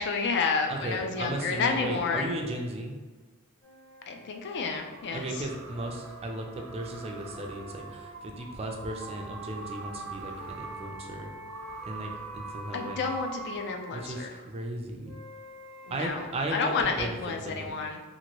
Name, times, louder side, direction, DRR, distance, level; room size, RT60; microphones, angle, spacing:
voice 1, 0.0-2.3 4.1-5.4 12.7-14.4 15.9-18.0, left 4 dB, 50° left, 4 dB, 0.3 m, -30 dB
voice 2, 0.7-3.0 5.1-11.3 11.9-13.0 13.9-15.1 15.9-17.7, right 1 dB, 25° right, 2 dB, 0.3 m, -36 dB
sound 1, 3.6-8.1 8.9-14.2 15.0-16.3, right 1 dB, 30° left, 0.8 m, -48 dB
sound 2, 4.5-14.3, right 4 dB, 75° right, 0.6 m, -44 dB
2.9 x 2.6 x 2.9 m, 1.3 s
head